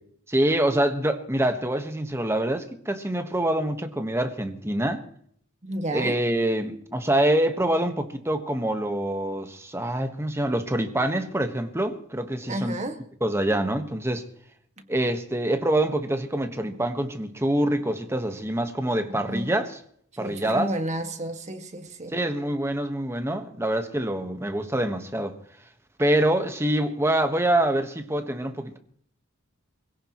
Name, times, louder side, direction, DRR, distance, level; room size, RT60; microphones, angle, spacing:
voice 1, 0.3-5.0 5.9-12.7 13.2-14.2 14.9-19.7 20.2-20.7 22.1-25.4 26.0-28.8, right 1 dB, 10° right, 1.4 m, -25 dB
voice 2, 5.6-6.2 12.5-13.0 14.8-14.9 19.1-19.5 20.1-22.1, right 1 dB, 35° right, 2.0 m, -31 dB
24.5 x 16.5 x 3.1 m
head